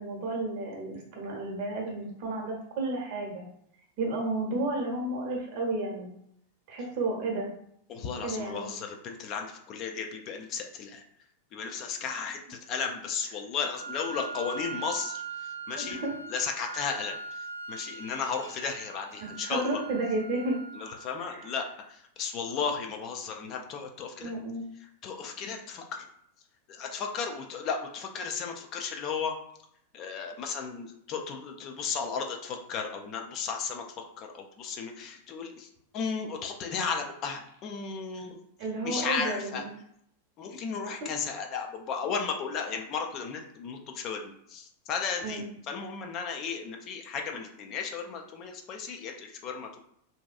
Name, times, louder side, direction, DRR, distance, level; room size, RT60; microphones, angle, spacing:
voice 1, 0.0-3.5 4.0-6.1 6.7-7.5 8.2-8.7 15.8-16.1 16.7-16.8 19.4-20.6 21.2-21.5 24.2-24.6 38.6-39.7 45.2-45.5, right 2 dB, 50° right, 0 dB, 0.8 m, -32 dB
voice 2, 7.9-11.0 11.5-16.0 16.3-19.8 20.8-24.3 25.0-26.1 26.7-29.3 29.9-35.7 35.9-38.4 38.8-39.6 40.4-49.8, left 6 dB, 35° left, 3 dB, 0.4 m, -34 dB
Wind instrument woodwind instrument, 13.7-21.7, right 4 dB, 65° right, 0.3 m, -41 dB
2.6 x 2.2 x 2.4 m, 0.71 s
figure-of-eight pair, 90°, 0 cm